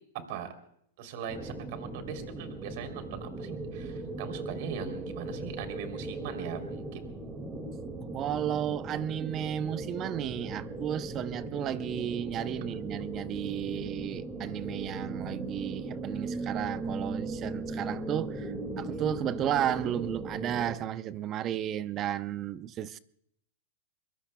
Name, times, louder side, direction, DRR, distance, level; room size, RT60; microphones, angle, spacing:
voice 1, 1.0-7.1, right 8 dB, 55° right, 3.3 m, -40 dB
sound 1, 1.3-20.8, right 2 dB, 15° right, 2.2 m, -38 dB
voice 2, 8.1-23.0, right 10 dB, 30° right, 0.7 m, -33 dB
24.0 x 22.5 x 2.3 m
hypercardioid pair, 135°, 0 cm